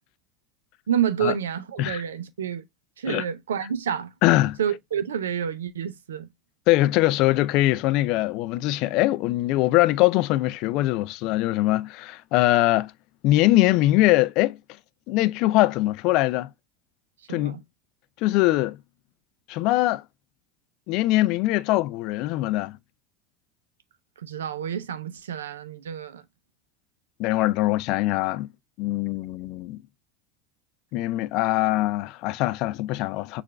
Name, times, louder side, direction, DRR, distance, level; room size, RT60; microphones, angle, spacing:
voice 1, 0.9-2.6 3.0-4.1 4.6-6.3 17.3-17.6 24.2-26.2, right 8 dB, 80° right, 0.5 m, -29 dB
voice 2, 4.2-4.6 6.7-12.9 13.2-14.6 15.1-16.5 17.3-17.6 18.2-18.8 19.5-20.0 20.9-22.8 27.2-28.5 28.8-29.8 30.9-33.4, left 17 dB, 55° left, 0.3 m, -22 dB
6.5 x 2.4 x 3.1 m
hypercardioid pair, 80°, 0 cm